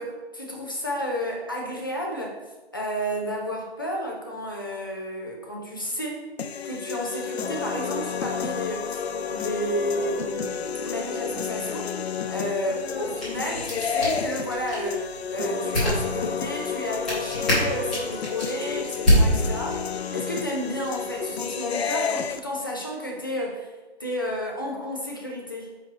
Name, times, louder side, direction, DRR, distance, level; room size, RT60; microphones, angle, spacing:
voice 1, 0.0-2.4 2.7-6.3 6.6-11.9 12.3-19.8 20.1-23.7 24.0-25.8, equal, 20° left, -2 dB, 0.6 m, -31 dB
sound 1, 6.4-22.4, left 6 dB, 75° left, 0.5 m, -31 dB
sound 2, 12.9-20.0, equal, ahead, 1.1 m, -27 dB
5.4 x 5.0 x 4.2 m, 1.2 s
hypercardioid pair, 175°, 32 cm